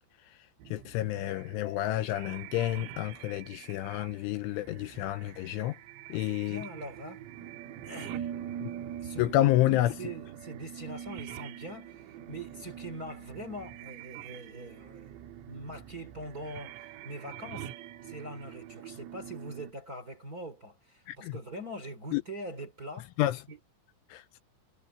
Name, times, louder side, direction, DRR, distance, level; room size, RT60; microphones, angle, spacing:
sound 1, 0.6-19.7, right 10 dB, 85° right, 4.2 m, -44 dB
voice 1, 0.7-5.8 6.1-6.6 8.6-8.7 9.2-9.9 21.1-21.4 22.1-22.2 23.2-23.4 24.1-24.2, left 15 dB, 85° left, 3.0 m, -29 dB
voice 2, 6.1-7.2 7.8-8.3 9.0-17.7 18.0-23.1 23.5-23.6, right 1 dB, 25° right, 2.6 m, -43 dB
omnidirectional pair, 5.9 m